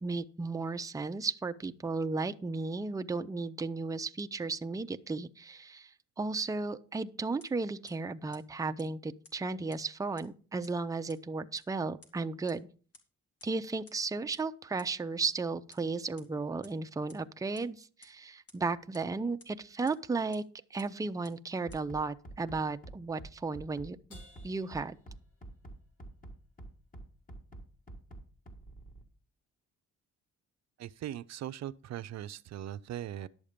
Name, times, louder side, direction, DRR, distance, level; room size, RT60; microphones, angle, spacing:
voice 1, 0.0-12.7 13.4-20.4 20.7-24.2 24.4-25.0, right 3 dB, 10° right, 0.5 m, -34 dB
sound 1, 7.4-7.5 7.9-8.0 8.3-8.4 8.8-8.9 9.2-9.3 9.7-9.8 10.2-10.3 10.6-10.7 11.1-11.2 11.6-11.7 12.0-12.1 12.5-12.6 12.9-13.0 13.4-13.5 13.9-14.0 14.3-14.4 14.8-14.9 15.2-15.3 15.7-15.8 16.2-16.3 16.6-16.7 17.1-17.2 17.6-17.7 18.0-18.1 18.5-18.6 18.9-19.0 19.4-19.5 19.9-20.0 20.3-20.4 20.8-20.9 21.2-21.3 21.7-21.8, left 3 dB, 55° left, 2.3 m, -54 dB
Bass drum, 21.7-29.0, right 2 dB, 25° left, 2.2 m, -47 dB
Crash cymbal, 24.1-25.8, left 2 dB, 85° left, 4.0 m, -59 dB
voice 2, 30.8-33.3, right 12 dB, 60° right, 0.5 m, -40 dB
11.0 x 7.1 x 5.1 m
cardioid pair, 90°, 30 cm